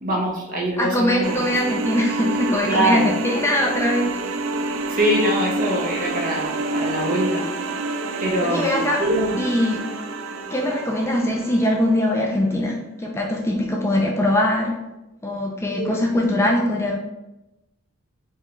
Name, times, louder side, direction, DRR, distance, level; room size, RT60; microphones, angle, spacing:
voice 1, 0.0-1.5 2.7-3.2 4.9-7.5 8.2-9.4 15.7-16.0, right 1 dB, 40° right, -1 dB, 0.8 m, -23 dB
voice 2, 0.8-4.1 8.4-9.0 9.4-9.8 10.5-14.8 15.2-17.0, left 1 dB, 15° left, -1 dB, 0.3 m, -22 dB
sound 1, 1.2-12.0, right 2 dB, 70° right, 0.3 m, -28 dB
4.5 x 2.2 x 3.0 m, 0.98 s
head